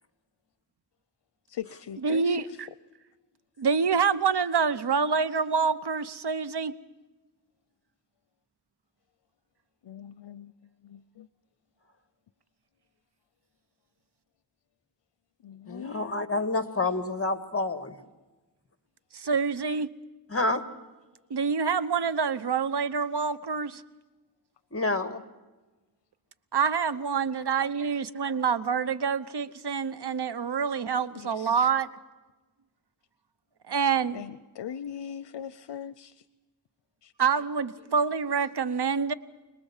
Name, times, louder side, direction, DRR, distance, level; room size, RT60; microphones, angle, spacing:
voice 1, 1.5-2.6 9.8-10.5 10.8-11.3 15.4-16.2 31.1-31.7 34.1-36.2 37.0-37.1, left 9 dB, 85° left, 16 dB, 0.6 m, -40 dB
voice 2, 2.0-2.7 3.6-6.7 19.1-19.9 21.3-23.8 26.5-31.9 33.7-34.2 37.2-39.1, right 6 dB, 70° right, 13 dB, 1.0 m, -26 dB
voice 3, 15.7-18.0 20.3-20.6 24.7-25.2, left 2 dB, 35° left, 9 dB, 1.9 m, -28 dB
26.0 x 19.5 x 7.4 m, 1.2 s
wide cardioid pair, 70°, 41 cm